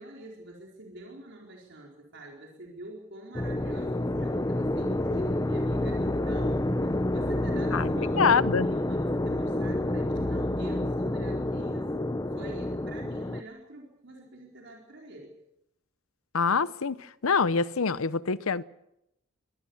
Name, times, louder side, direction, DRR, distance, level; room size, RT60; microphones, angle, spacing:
voice 1, 0.0-15.3, right 1 dB, 60° right, 4.5 m, -47 dB
sound 1, 3.3-13.4, left 1 dB, 15° left, 0.8 m, -28 dB
voice 2, 7.7-8.7 16.3-17.0 17.2-18.6, left 5 dB, 85° left, 0.8 m, -25 dB
25.0 x 19.0 x 7.2 m
head